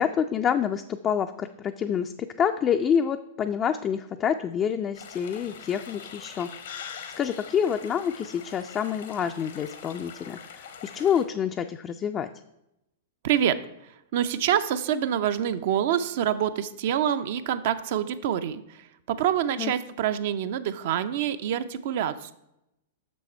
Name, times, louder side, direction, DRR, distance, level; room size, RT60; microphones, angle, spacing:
voice 1, 0.0-12.3 19.6-19.7, left 8 dB, 30° left, 6 dB, 0.4 m, -27 dB
sound 1, 4.9-11.2, left 7 dB, 70° left, 1.0 m, -43 dB
voice 2, 13.2-13.6 14.1-22.3, right 10 dB, 60° right, 11 dB, 0.5 m, -26 dB
6.6 x 6.2 x 4.3 m, 0.85 s
hypercardioid pair, 105°, 0 cm